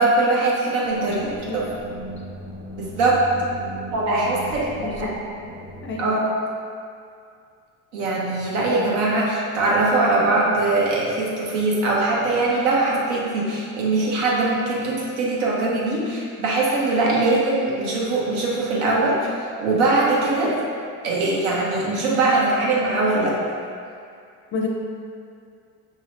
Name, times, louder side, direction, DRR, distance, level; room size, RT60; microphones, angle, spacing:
voice 1, 0.0-1.6 2.8-3.2 3.9-5.1 6.0-6.2 7.9-20.5 21.0-23.4, right 2 dB, 90° right, -4 dB, 1.2 m, -21 dB
sound 1, 0.8-5.9, equal, 40° right, 0.7 m, -37 dB
voice 2, 1.1-1.7 4.8-5.1 5.8-6.1 24.5-24.7, left 4 dB, 30° left, 0 dB, 0.4 m, -30 dB
5.3 x 2.9 x 3.2 m, 2.3 s
cardioid pair, 140°, 39 cm